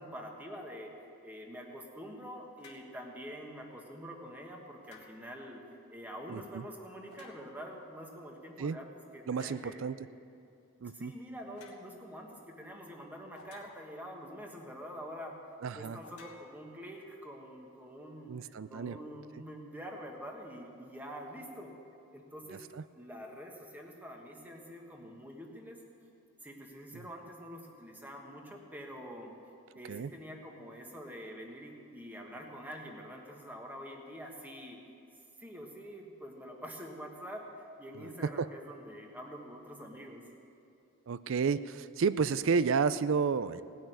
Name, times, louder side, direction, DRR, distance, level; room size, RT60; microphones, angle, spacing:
voice 1, 0.0-5.6 5.9-9.8 10.9-15.3 15.7-21.7 22.1-22.6 22.9-25.8 26.4-29.3 29.7-34.8 35.4-40.3, equal, 10° right, 0 dB, 1.3 m, -46 dB
sound 1, 2.6-2.9 4.8-5.4 7.1-7.7 9.3-9.7 11.5-11.8 13.3-14.1 16.0-17.1, left 4 dB, 85° left, 1.7 m, -56 dB
voice 2, 6.3-6.6 8.6-8.8 9.3-10.0 10.8-11.1 15.6-16.0 18.3-19.0 22.5-22.6 29.9-30.1 38.0-38.5 41.1-43.6, right 5 dB, 60° right, 15 dB, 0.4 m, -31 dB
17.5 x 6.4 x 9.1 m, 2.7 s
head